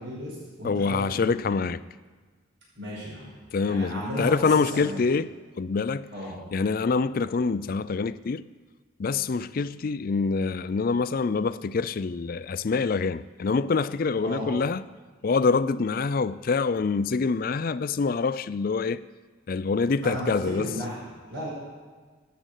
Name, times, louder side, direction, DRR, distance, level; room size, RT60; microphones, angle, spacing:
voice 1, 0.0-1.6 2.8-3.3 3.6-4.9 6.1-6.4 14.2-14.5 20.0-21.5, equal, 70° right, 5.6 m, -34 dB
voice 2, 0.6-1.8 3.5-5.3 5.6-6.1 6.5-8.4 9.0-14.8 15.2-19.0 19.5-20.7, left 4 dB, 45° left, 0.4 m, -25 dB
13.5 x 9.0 x 8.2 m
head